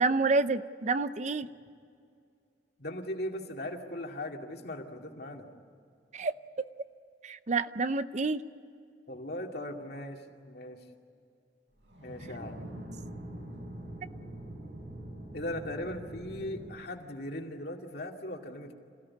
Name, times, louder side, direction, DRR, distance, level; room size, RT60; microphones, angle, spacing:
voice 1, 0.0-1.5 6.1-6.3 7.2-8.4, right 3 dB, 40° right, 13 dB, 0.6 m, -28 dB
voice 2, 2.8-5.5 9.1-10.9 12.0-12.7 15.3-18.7, left 1 dB, 60° left, 2 dB, 2.4 m, -39 dB
sound 1, 11.8-16.7, right 1 dB, 75° right, 7.4 m, -44 dB
27.0 x 16.5 x 9.8 m, 2.4 s
head